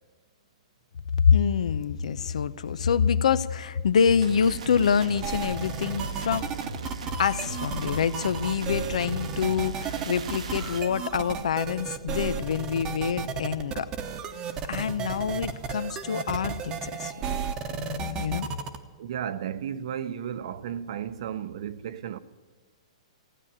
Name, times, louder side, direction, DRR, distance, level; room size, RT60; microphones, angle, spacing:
voice 1, 1.1-6.5 7.2-13.9 14.7-17.1 17.7-18.5, left 7 dB, 80° left, 0.7 m, -26 dB
sound 1, 4.2-10.9, right 3 dB, 90° right, 1.3 m, -37 dB
sound 2, 5.2-18.8, right 6 dB, 20° right, 0.9 m, -34 dB
voice 2, 19.0-22.2, right 9 dB, 55° right, 0.7 m, -34 dB
15.5 x 10.0 x 8.8 m
hypercardioid pair, 160°, 4 cm